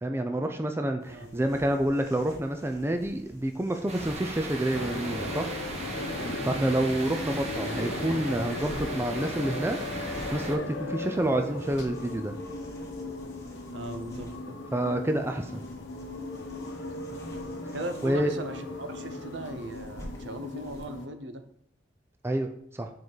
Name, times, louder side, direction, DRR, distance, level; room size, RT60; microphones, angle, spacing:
voice 1, 0.0-5.5 6.4-12.3 14.7-15.6 18.0-18.3 22.2-22.9, right 1 dB, 15° right, 6 dB, 0.4 m, -28 dB
sound 1, 1.0-20.9, equal, 15° left, 1.2 m, -50 dB
voice 2, 1.1-1.4 13.7-14.6 17.7-21.4, right 1 dB, 70° right, 8 dB, 0.7 m, -38 dB
sound 2, 3.9-10.6, right 1 dB, 35° right, 1.0 m, -37 dB
Wind Whistling Window Frame, 4.7-21.1, left 2 dB, 80° left, 0.8 m, -37 dB
7.6 x 4.6 x 3.9 m, 0.70 s
head